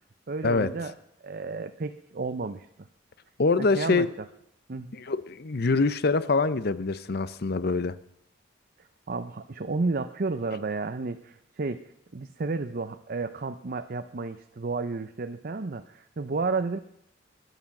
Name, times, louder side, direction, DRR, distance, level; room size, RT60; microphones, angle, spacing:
voice 1, 0.3-0.9 1.2-2.7 3.6-4.1 4.7-4.9 9.1-11.9 12.1-16.8, right 3 dB, 50° right, 9 dB, 0.6 m, -32 dB
voice 2, 3.4-4.1 4.9-8.0, left 3 dB, 55° left, 15 dB, 0.7 m, -25 dB
20.0 x 11.0 x 6.0 m, 0.77 s
head